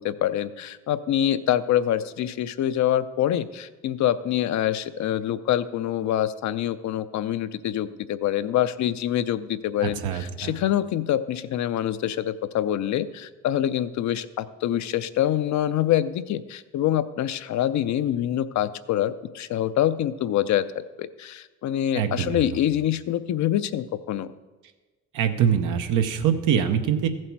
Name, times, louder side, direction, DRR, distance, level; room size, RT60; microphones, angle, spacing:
voice 1, 0.0-24.3, left 11 dB, 70° left, 13 dB, 0.6 m, -25 dB
voice 2, 9.8-10.5 21.9-22.4 25.1-27.1, right 8 dB, 90° right, 7 dB, 0.9 m, -24 dB
14.5 x 7.6 x 4.6 m, 1.2 s
cardioid pair, 90°, 30 cm